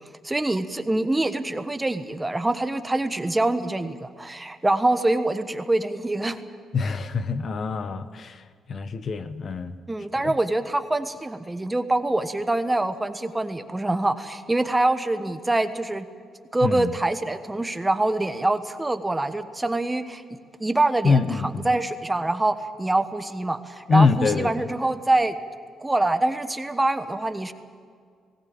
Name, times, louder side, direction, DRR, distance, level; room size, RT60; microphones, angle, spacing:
voice 1, 0.2-6.4 9.9-16.1 16.5-20.2 20.6-25.4 25.8-27.5, right 2 dB, 15° right, 9 dB, 1.2 m, -25 dB
voice 2, 6.7-8.4 8.7-9.7 10.2-10.3 16.6-16.9 21.0-21.7 23.9-24.5, left 4 dB, 50° left, 11 dB, 1.1 m, -24 dB
19.5 x 17.5 x 8.9 m, 2.1 s
cardioid pair, 90°, 0 cm